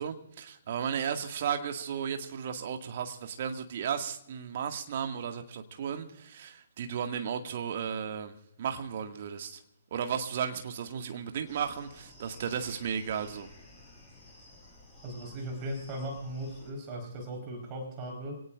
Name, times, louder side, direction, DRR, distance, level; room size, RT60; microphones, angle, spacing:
voice 1, 0.0-9.6 9.9-13.5, right 7 dB, 45° right, 2.0 m, -34 dB
sound 1, 11.5-16.7, left 2 dB, ahead, 7.2 m, -54 dB
voice 2, 15.0-18.4, right 1 dB, 25° right, 4.4 m, -38 dB
27.0 x 18.0 x 2.5 m
figure-of-eight pair, 130°, 0 cm